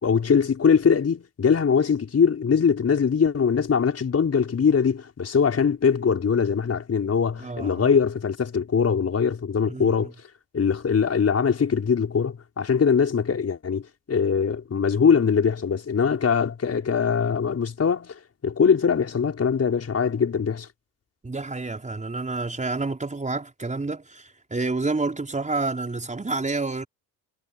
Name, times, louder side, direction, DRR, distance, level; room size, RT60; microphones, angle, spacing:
voice 1, 0.0-10.1 10.5-20.7, left 6 dB, 35° left, 5.8 m, -22 dB
voice 2, 7.4-7.9 9.7-10.1 21.2-26.9, right 3 dB, 15° right, 4.9 m, -29 dB
hypercardioid pair, 65°, 42 cm